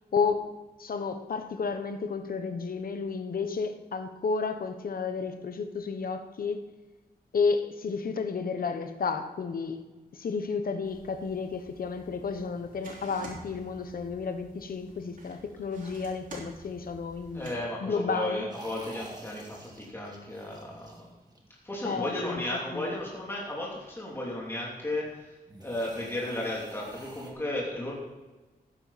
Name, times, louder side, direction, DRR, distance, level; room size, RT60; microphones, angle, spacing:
voice 1, 0.1-0.5 0.8-6.6 7.3-9.8 10.1-18.5 21.8-23.0, left 5 dB, 65° left, 8 dB, 1.2 m, -32 dB
sound 1, 10.8-17.6, right 2 dB, 55° right, 3.4 m, -49 dB
voice 2, 17.3-21.1 21.6-25.1 25.6-27.9, left 1 dB, 15° left, -4 dB, 3.0 m, -34 dB
sound 2, 18.5-21.7 25.5-27.3, right 2 dB, 25° right, 2.0 m, -48 dB
14.0 x 11.0 x 4.2 m, 1.2 s
wide cardioid pair, 130°, 16 cm